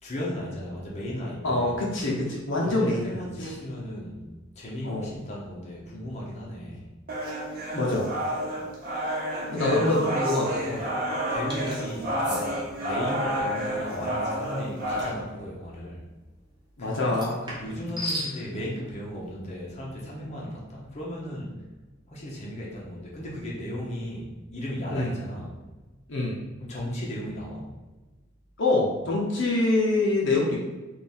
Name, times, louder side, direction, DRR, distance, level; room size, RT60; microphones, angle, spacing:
voice 1, 0.0-1.8 2.6-4.2 4.6-6.8 9.5-10.6 11.3-12.6 12.8-16.0 16.8-17.2 17.6-21.5 22.1-25.6 26.6-27.7, equal, 35° left, -4 dB, 0.9 m, -35 dB
voice 2, 1.4-3.1 3.4-3.5 4.8-5.1 7.7-8.1 9.5-10.8 16.8-17.3 24.9-25.1 26.1-26.4 28.6-30.6, left 2 dB, 65° left, -3 dB, 0.8 m, -25 dB
sound 1, 7.1-15.1, equal, 45° right, 1.0 m, -30 dB
sound 2, 11.5-11.8 12.2-12.4 15.0-15.2 17.1-18.3, equal, 20° right, 1.0 m, -34 dB
3.5 x 2.6 x 4.3 m, 1.2 s
head